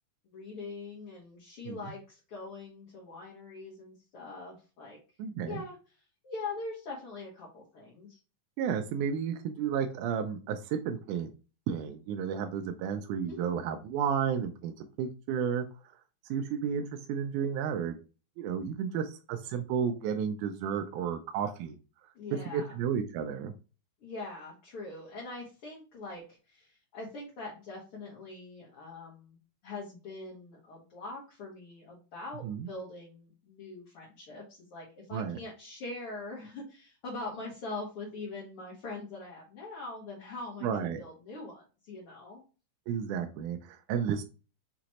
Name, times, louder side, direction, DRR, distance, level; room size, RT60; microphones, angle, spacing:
voice 1, 0.2-5.0 5.4-5.8 6.2-8.2 13.3-13.4 22.1-22.8 24.0-29.4 29.6-42.4, left 3 dB, 55° left, -4 dB, 1.7 m, -43 dB
voice 2, 5.2-5.6 8.6-11.3 11.7-15.7 16.3-18.0 18.4-21.8 22.5-23.5 32.4-32.7 35.1-35.4 40.6-41.0 42.9-44.2, right 7 dB, 85° right, 6 dB, 1.8 m, -32 dB
5.9 x 3.0 x 2.9 m, 0.33 s
omnidirectional pair, 4.1 m